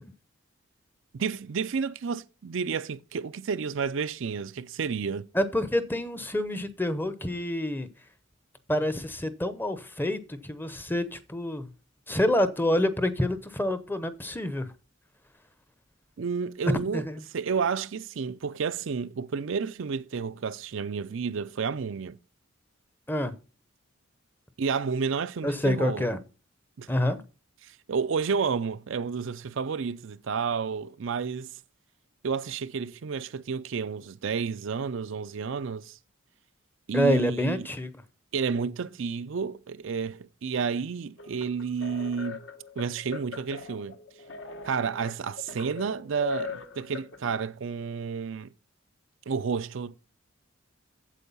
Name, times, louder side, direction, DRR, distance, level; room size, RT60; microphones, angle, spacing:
voice 1, 1.1-5.3 16.2-17.0 17.3-22.2 24.6-26.1 26.8-26.9 27.6-31.5 32.2-36.0 36.9-37.7 38.3-42.4 42.8-43.9 44.6-48.5 49.3-50.0, right 6 dB, 65° right, 0.5 m, -31 dB
voice 2, 5.3-7.9 8.7-11.7 12.1-14.7 16.9-17.2 23.1-23.3 25.4-26.2 26.9-27.2 36.9-37.9, left 1 dB, 10° left, 0.8 m, -27 dB
sound 1, 41.2-47.4, left 6 dB, 60° left, 1.1 m, -41 dB
8.3 x 7.7 x 5.4 m
head